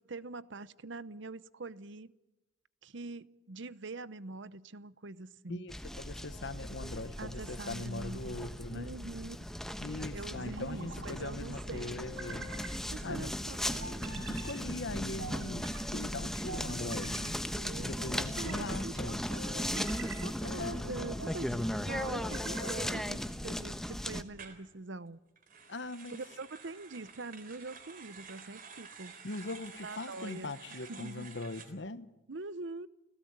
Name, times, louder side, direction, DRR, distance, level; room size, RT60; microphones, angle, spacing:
voice 1, 0.0-2.1 2.8-5.6 7.2-8.4 8.7-9.5 10.1-11.9 12.9-14.3 17.6-18.0 18.4-25.2 26.1-29.1 29.8-31.3 32.3-32.9, right 3 dB, 60° right, 0.8 m, -44 dB
voice 2, 5.5-8.9 9.8-12.6 13.0-13.3 14.3-17.4 17.8-19.3 20.4-21.6 25.7-26.2 29.2-32.1, left 2 dB, 60° left, 1.1 m, -41 dB
sound 1, 5.7-24.2, equal, ahead, 1.0 m, -37 dB
sound 2, 8.3-9.0 10.3-11.1 12.0-12.8 13.8-14.6 15.2-15.8 16.5-17.3 18.0-18.6 19.4-20.3 20.8-21.4 22.1-22.9, right 2 dB, 75° right, 5.9 m, -46 dB
sound 3, 24.3-24.6 25.4-31.7, right 5 dB, 45° right, 3.7 m, -51 dB
29.5 x 17.5 x 8.8 m
head